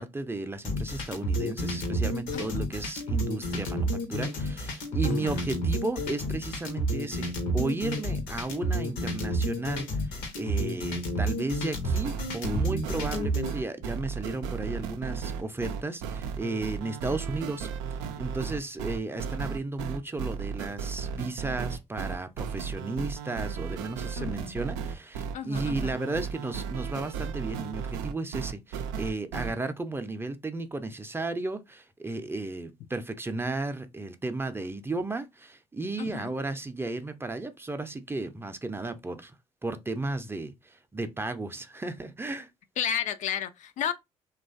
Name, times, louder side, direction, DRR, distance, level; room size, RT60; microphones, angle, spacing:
voice 1, 0.0-17.7 18.2-39.3 39.6-42.5, right 2 dB, 15° right, 0.5 m, -34 dB
sound 1, 0.6-13.5, right 1 dB, 70° left, 0.8 m, -30 dB
sound 2, 11.8-29.5, right 6 dB, 75° right, 0.4 m, -35 dB
voice 2, 24.2-24.6 25.3-26.0 36.0-36.3 42.8-43.9, left 9 dB, 55° left, 0.4 m, -32 dB
2.9 x 2.3 x 2.6 m
hypercardioid pair, 45°, 15 cm